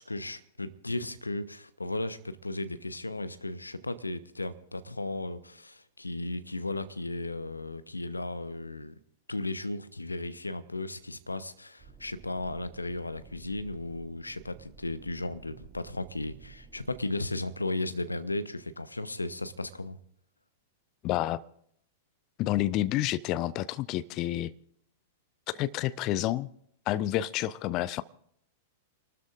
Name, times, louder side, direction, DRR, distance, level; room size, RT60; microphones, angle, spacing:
voice 1, 0.0-9.0 9.3-20.0, left 2 dB, 85° left, 0.8 m, -35 dB
sound 1, 11.8-17.0, right 5 dB, 20° right, 2.5 m, -53 dB
voice 2, 21.0-21.4 22.4-24.5 25.5-26.5 26.9-28.0, left 14 dB, 35° left, 0.6 m, -29 dB
30.0 x 13.0 x 2.5 m
figure-of-eight pair, 100°, 0 cm